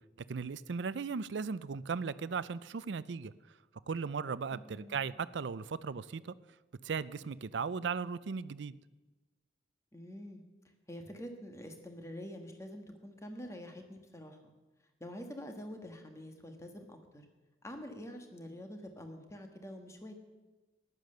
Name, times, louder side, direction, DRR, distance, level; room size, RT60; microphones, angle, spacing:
voice 1, 0.3-3.3 3.9-6.3 6.8-8.7, right 5 dB, 75° right, 17 dB, 0.5 m, -37 dB
voice 2, 4.5-5.0 9.9-10.4 10.9-14.5 15.0-17.2 17.6-20.2, equal, 15° left, 5 dB, 1.4 m, -46 dB
14.5 x 11.0 x 6.6 m, 1.2 s
head